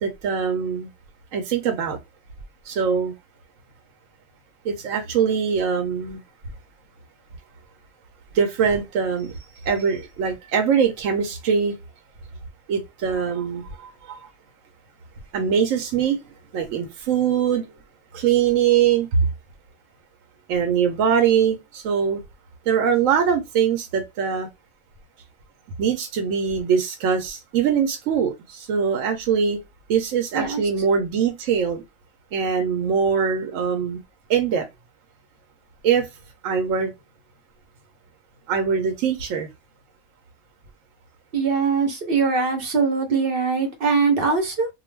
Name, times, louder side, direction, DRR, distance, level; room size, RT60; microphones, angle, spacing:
voice 1, 0.0-0.9 1.3-2.0 2.7-3.1 4.6-6.2 8.3-9.3 9.6-11.8 12.7-14.3 15.3-16.2 16.5-17.7 18.1-19.1 20.5-22.2 22.7-24.5 25.8-29.6 29.9-31.8 32.3-34.0 34.3-34.7 35.8-36.1 36.4-36.9 38.5-39.5, right 7 dB, 75° right, 0.9 m, -22 dB
voice 2, 41.3-44.7, right 4 dB, 55° right, 0.7 m, -22 dB
2.4 x 2.2 x 3.1 m
omnidirectional pair, 1.4 m